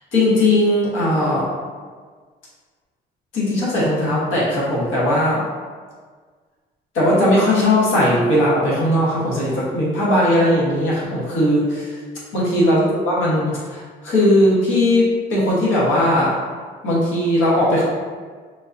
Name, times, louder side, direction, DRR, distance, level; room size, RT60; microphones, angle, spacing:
voice 1, 0.1-1.5 3.3-5.4 6.9-12.0 12.3-16.4 16.8-17.8, left 1 dB, 85° left, -7 dB, 1.2 m, -18 dB
3.7 x 2.7 x 2.6 m, 1.5 s
cardioid pair, 90°, 20 cm